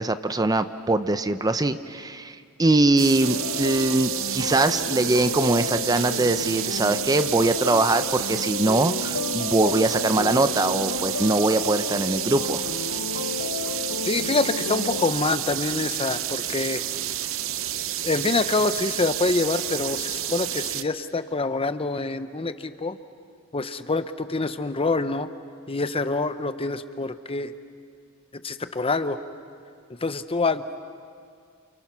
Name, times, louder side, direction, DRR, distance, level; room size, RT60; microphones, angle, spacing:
voice 1, 0.0-12.7, right 2 dB, 15° right, 11 dB, 0.6 m, -22 dB
sound 1, 3.0-20.8, right 11 dB, 65° right, 0.8 m, -30 dB
sound 2, 3.2-15.1, left 5 dB, 65° left, 0.7 m, -32 dB
voice 2, 14.0-16.8 18.0-23.0 23.5-25.3 25.7-27.5 28.4-29.2 30.0-30.6, left 3 dB, 25° left, 11 dB, 0.8 m, -26 dB
29.0 x 29.0 x 6.1 m, 2.2 s
head